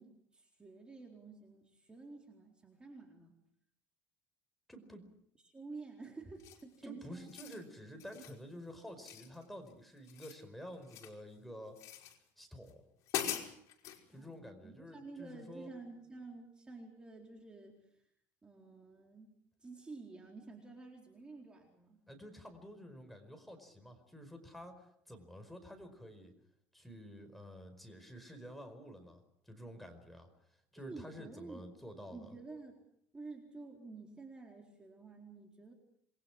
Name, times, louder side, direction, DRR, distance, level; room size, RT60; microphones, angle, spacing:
voice 1, 0.0-3.4 5.4-7.3 14.1-17.8 18.4-19.3 19.6-22.0 30.8-31.7 32.1-32.8 33.1-35.7, right 3 dB, 15° right, 1 dB, 4.2 m, -51 dB
voice 2, 4.7-5.1 6.8-11.8 12.4-12.8 14.1-15.7 22.1-26.3 26.7-32.4, equal, ahead, 5 dB, 5.0 m, -50 dB
sound 1, 6.4-6.8 7.2-7.6 8.0-8.4 9.0-9.7 10.0-11.2 11.8-12.2 12.7-12.8 13.1-14.0, left 10 dB, 55° left, 5.2 m, -42 dB
28.5 x 22.0 x 6.1 m, 0.69 s
cardioid pair, 145°, 6 cm